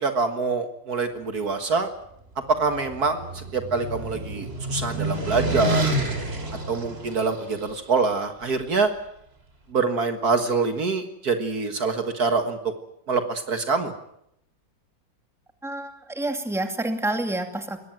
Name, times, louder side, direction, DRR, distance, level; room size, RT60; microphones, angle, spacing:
voice 1, 0.0-1.9 2.5-5.9 6.7-8.9 9.7-12.6 13.1-13.9, right 4 dB, 55° right, 7 dB, 2.1 m, -25 dB
sound 1, 2.5-7.7, right 1 dB, 35° right, 3.1 m, -29 dB
voice 2, 15.6-17.8, right 1 dB, ahead, 6 dB, 2.2 m, -28 dB
22.0 x 18.5 x 9.2 m, 0.76 s
omnidirectional pair, 2.0 m